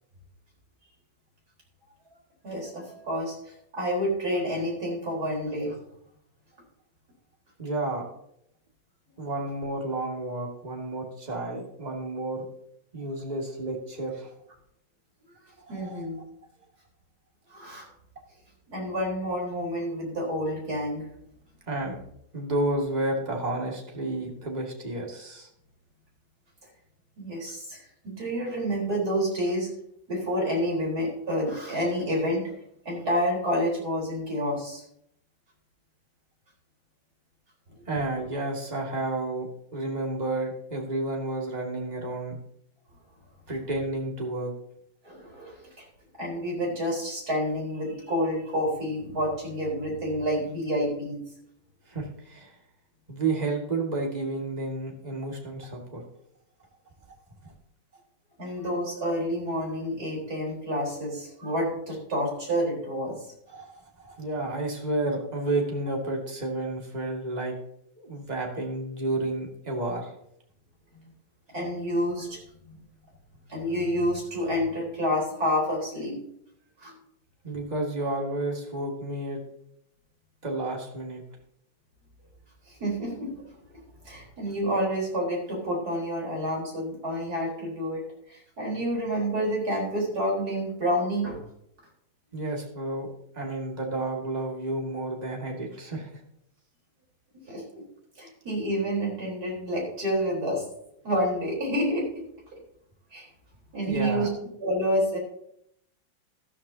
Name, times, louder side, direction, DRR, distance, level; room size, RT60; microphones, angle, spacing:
voice 1, 2.4-5.8 15.7-16.2 17.5-17.9 18.7-21.1 27.2-29.7 30.1-32.4 32.8-34.8 45.0-45.8 46.2-51.2 58.4-63.2 71.5-72.4 72.7-72.8 73.5-76.2 76.8-77.0 82.7-83.3 84.0-91.4 97.5-97.8 98.2-100.6 101.0-102.2 102.5-102.6 103.1-103.3 103.7-104.3 104.6-105.2, equal, 50° right, -2 dB, 4.7 m, -29 dB
voice 2, 7.6-8.1 9.2-12.5 12.9-14.3 15.7-16.1 18.8-18.9 21.7-22.0 22.3-25.5 37.9-39.5 39.7-42.4 43.5-44.5 51.9-52.5 53.1-56.0 57.4-57.5 63.5-67.5 68.0-70.1 77.4-79.4 80.4-81.2 92.3-93.1 93.3-96.2 103.9-104.3, right 2 dB, 20° right, -1 dB, 2.2 m, -31 dB
13.0 x 13.0 x 2.8 m, 0.74 s
omnidirectional pair, 2.1 m